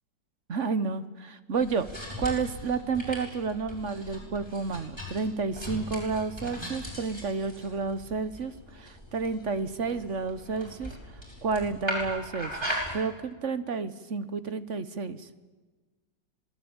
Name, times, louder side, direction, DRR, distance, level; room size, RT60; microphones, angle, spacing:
voice 1, 0.5-1.9 2.2-10.9 11.4-15.3, right 4 dB, 50° right, 13 dB, 1.2 m, -31 dB
sound 1, 1.5-12.9, equal, 15° right, 7.6 m, -39 dB
26.5 x 19.0 x 8.8 m, 1.3 s
omnidirectional pair, 2.0 m